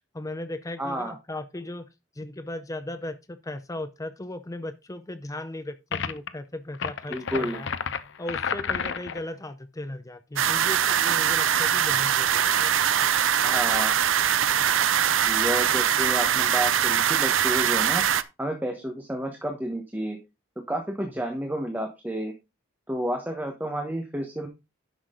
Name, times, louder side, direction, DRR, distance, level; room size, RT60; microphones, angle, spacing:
voice 1, 0.1-1.9 2.2-7.7 8.2-12.7, left 1 dB, 15° left, 0.6 m, -37 dB
voice 2, 0.8-1.1 7.1-7.6 13.4-13.9 15.3-18.0 18.4-20.2 20.7-22.3 22.9-24.5, equal, 10° right, 1.2 m, -30 dB
sound 1, 5.9-6.3 6.7-9.3, left 6 dB, 60° left, 0.7 m, -31 dB
sound 2, 10.4-18.2, right 9 dB, 70° right, 0.6 m, -22 dB
10.0 x 6.4 x 3.8 m
head